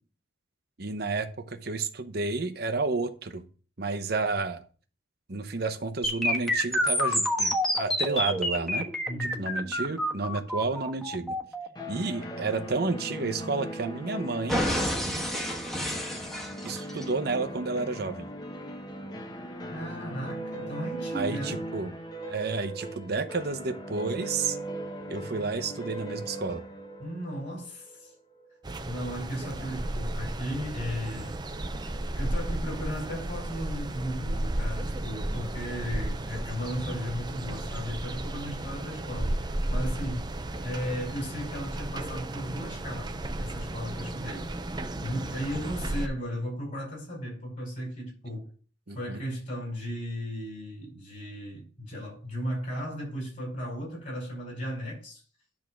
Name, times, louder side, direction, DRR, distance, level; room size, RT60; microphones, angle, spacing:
voice 1, 0.8-3.4 3.8-4.6 5.3-8.9 9.2-11.4 11.9-14.6 16.6-18.3 21.1-21.9 22.3-24.6 25.1-26.6 48.9-49.2, right 3 dB, 55° right, 0.9 m, -31 dB
sound 1, 6.0-14.0 14.5-17.0, left 1 dB, ahead, 1.3 m, -29 dB
voice 2, 9.1-9.4 19.7-21.6 27.0-28.1 28.8-31.4 32.1-40.3 40.6-44.5 45.0-48.5 48.9-55.2, equal, 45° left, 5.0 m, -35 dB
sound 2, 11.8-28.5, right 1 dB, 20° left, 1.0 m, -39 dB
sound 3, 28.6-46.1, right 1 dB, 20° right, 0.6 m, -34 dB
10.5 x 3.7 x 6.2 m
head